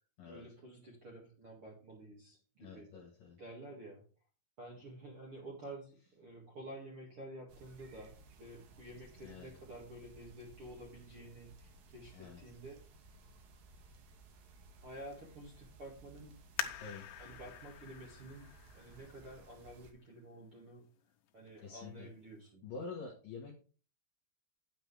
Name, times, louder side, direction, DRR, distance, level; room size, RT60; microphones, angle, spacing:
voice 1, 0.2-2.9 3.4-4.0 4.6-12.8 14.8-16.9 17.2-18.5 18.7-20.9 21.3-22.6, right 1 dB, 45° right, -3 dB, 2.0 m, -51 dB
voice 2, 2.6-3.4 9.2-9.5 12.1-12.4 16.8-17.1 21.6-22.1 22.6-23.5, left 4 dB, 65° left, -1 dB, 2.4 m, -47 dB
sound 1, 7.5-19.9, right 2 dB, 65° right, 2.4 m, -59 dB
sound 2, 16.6-19.9 20.5-20.6 21.3-21.7 22.0-22.1, left 11 dB, 85° left, 3.2 m, -45 dB
9.1 x 8.8 x 3.3 m, 0.37 s
omnidirectional pair, 5.5 m